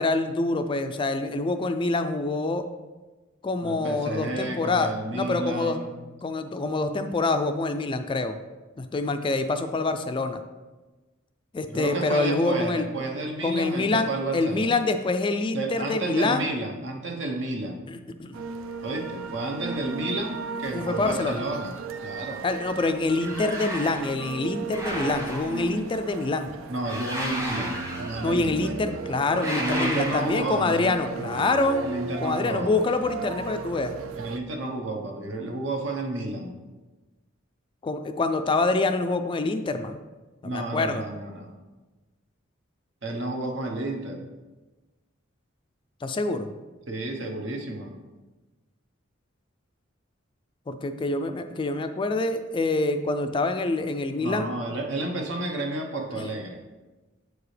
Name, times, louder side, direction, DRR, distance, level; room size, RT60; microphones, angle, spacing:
voice 1, 0.0-2.6 3.4-5.8 6.2-8.4 8.8-10.4 11.5-12.9 13.4-16.5 17.9-18.3 20.7-21.4 22.4-26.5 28.2-31.8 32.2-33.9 37.8-40.0 40.4-41.0 46.0-46.5 50.7-54.5 56.1-56.3, left 3 dB, 25° left, 8 dB, 0.3 m, -26 dB
voice 2, 3.6-5.9 11.7-14.7 15.5-17.8 18.8-21.7 22.0-22.4 26.7-28.7 29.6-30.9 31.8-32.7 34.2-36.6 40.4-41.5 43.0-44.2 46.9-48.0 54.2-56.6, right 2 dB, 65° right, 2 dB, 1.0 m, -31 dB
sound 1, 18.3-34.4, right 4 dB, 85° right, 0.4 m, -36 dB
sound 2, 23.2-24.1 24.7-25.8 26.8-28.4 29.3-30.6, equal, 15° right, 1.2 m, -33 dB
7.9 x 4.7 x 3.3 m, 1.2 s
head